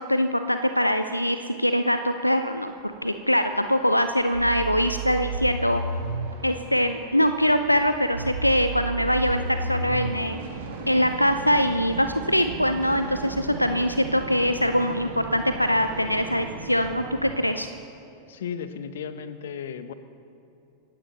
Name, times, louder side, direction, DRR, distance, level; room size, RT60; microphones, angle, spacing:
voice 1, 0.1-5.8 6.4-10.4 10.9-17.7, equal, 90° left, 9 dB, 0.5 m, -23 dB
sound 1, 2.6-17.4, right 4 dB, 55° right, 3.7 m, -39 dB
sound 2, 4.3-6.3 8.1-10.1 12.0-12.1, right 4 dB, 75° right, 1.2 m, -31 dB
voice 2, 18.3-19.9, left 7 dB, 60° left, 12 dB, 0.9 m, -35 dB
27.5 x 15.5 x 3.0 m, 2.8 s
figure-of-eight pair, 90°, 0 cm